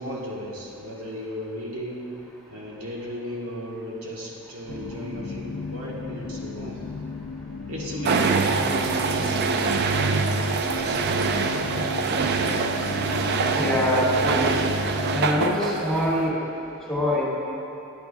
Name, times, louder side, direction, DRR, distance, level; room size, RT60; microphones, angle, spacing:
voice 1, 0.0-2.0 2.5-6.8 7.7-11.7, equal, 85° right, -4 dB, 1.4 m, -35 dB
sound 1, 4.7-15.6, left 4 dB, 50° left, 0.4 m, -35 dB
sound 2, 8.0-16.3, right 4 dB, 50° right, 0.4 m, -24 dB
voice 2, 13.5-14.5 15.1-16.4 16.9-17.2, left 1 dB, 5° left, -8 dB, 1.9 m, -24 dB
10.5 x 8.7 x 2.4 m, 2.8 s
head